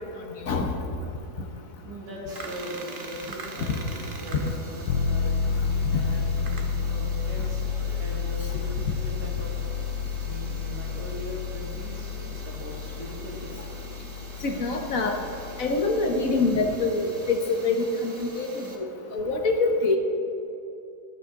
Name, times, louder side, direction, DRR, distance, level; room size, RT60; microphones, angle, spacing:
voice 1, 1.8-5.4 5.8-9.6 10.2-13.6, equal, 80° right, -4 dB, 3.0 m, -40 dB
sound 1, 2.3-18.8, right 3 dB, 40° right, 1.0 m, -44 dB
sound 2, 4.9-16.7, left 6 dB, 85° left, 1.2 m, -30 dB
voice 2, 14.4-15.2 15.6-20.0, left 3 dB, 60° left, 3 dB, 1.4 m, -25 dB
13.0 x 12.0 x 3.7 m, 3.0 s
omnidirectional pair, 1.7 m